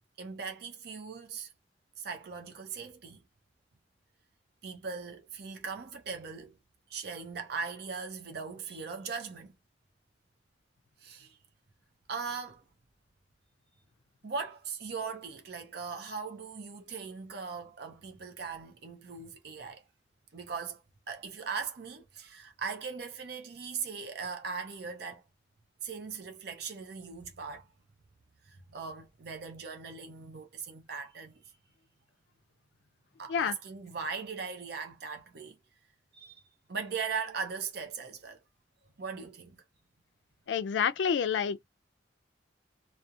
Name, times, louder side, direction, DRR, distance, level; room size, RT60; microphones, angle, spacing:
voice 1, 0.2-1.5 2.0-3.2 4.6-6.6 6.9-9.5 11.0-11.4 12.1-12.6 14.2-19.9 20.3-25.2 25.8-27.7 28.4-31.5 33.2-35.6 36.1-36.4 36.7-38.4 39.0-39.6, right 5 dB, 60° right, 0.6 m, -39 dB
voice 2, 40.5-41.7, left 7 dB, 75° left, 0.3 m, -28 dB
2.7 x 2.0 x 2.3 m
head